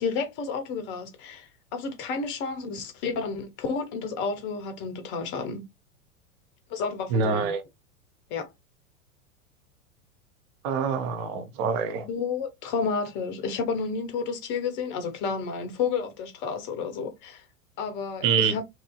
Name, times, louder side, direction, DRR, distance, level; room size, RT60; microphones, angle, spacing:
voice 1, 0.0-5.6 6.7-7.5 8.3-8.5 12.0-17.4 17.8-18.6, left 5 dB, 25° left, 0.7 m, -31 dB
voice 2, 7.1-7.6 10.6-12.1 18.2-18.5, right 5 dB, 25° right, 0.4 m, -25 dB
2.9 x 2.5 x 2.2 m
figure-of-eight pair, 90°, 42 cm